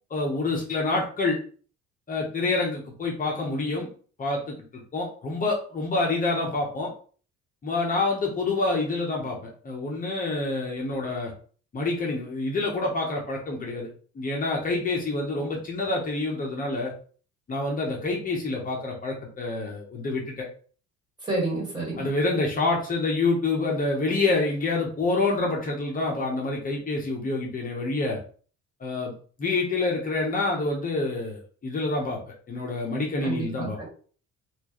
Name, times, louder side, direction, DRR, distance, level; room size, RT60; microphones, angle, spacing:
voice 1, 0.1-1.4 2.1-3.9 4.2-4.6 4.9-6.9 7.6-11.3 11.7-13.9 14.1-16.9 17.5-20.5 22.0-28.2 28.8-29.1 29.4-32.2 32.5-33.8, left 3 dB, 30° left, -1 dB, 0.8 m, -27 dB
voice 2, 21.2-22.1 33.2-33.8, right 2 dB, 15° right, -3 dB, 1.6 m, -29 dB
4.4 x 2.4 x 2.9 m, 0.42 s
cardioid pair, 150°, 29 cm